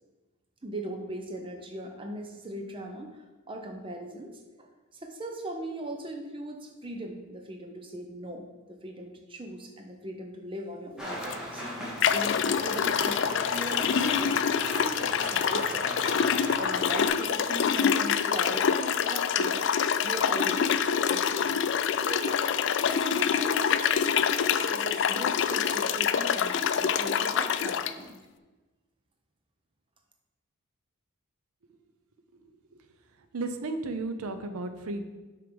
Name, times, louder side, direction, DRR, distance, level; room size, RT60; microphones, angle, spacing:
voice 1, 0.6-4.7 4.9-14.4 14.7-15.9 16.6-19.7 20.0-21.5 22.0-22.4 22.9-28.2, right 1 dB, 25° right, 3 dB, 0.7 m, -39 dB
Rain, 11.0-17.1, equal, 5° right, 1.5 m, -38 dB
sound 1, 11.2-11.4 12.0-27.9, left 7 dB, 55° left, 0.3 m, -26 dB
voice 2, 33.3-35.0, right 2 dB, 85° right, 8 dB, 0.7 m, -33 dB
6.8 x 4.7 x 5.2 m, 1.2 s
head